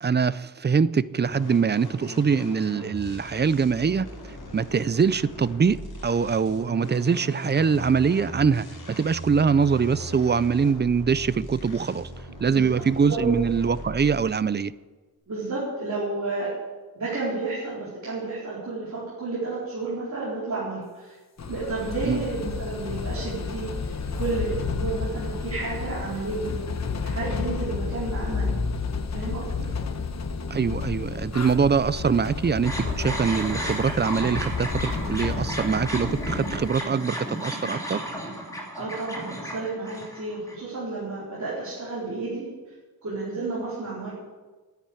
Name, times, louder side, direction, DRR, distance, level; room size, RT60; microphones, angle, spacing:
voice 1, 0.0-4.1 4.5-12.1 12.4-14.7 22.0-22.2 30.5-38.0, right 6 dB, 30° right, 0.4 m, -23 dB
sound 1, 1.3-14.3, equal, 80° left, 4.0 m, -39 dB
voice 2, 15.3-16.5 16.9-21.2 21.4-26.5 27.1-28.6 29.1-29.7 38.8-42.7 43.0-44.1, right 3 dB, 50° right, 4.4 m, -31 dB
sound 2, 21.4-36.7, left 5 dB, 45° left, 0.9 m, -31 dB
sound 3, 32.6-40.5, equal, 10° left, 2.7 m, -33 dB
10.5 x 10.0 x 9.6 m
wide cardioid pair, 175°, 37 cm